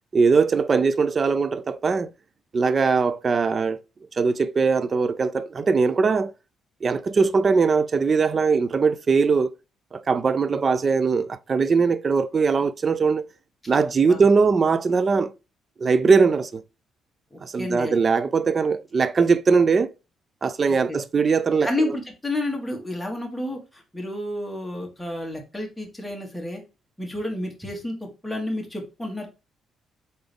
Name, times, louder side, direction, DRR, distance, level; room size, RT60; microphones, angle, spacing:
voice 1, 0.1-2.1 2.5-3.8 4.2-6.3 6.8-9.5 9.9-13.3 13.7-15.3 15.8-16.6 17.4-19.9 20.4-22.0, right 5 dB, 40° right, 0.4 m, -21 dB
voice 2, 17.3-18.0 20.9-21.0 21.6-26.6 27.0-29.3, left 1 dB, 5° left, 1.6 m, -30 dB
4.0 x 3.8 x 3.4 m
cardioid pair, 90°, 0 cm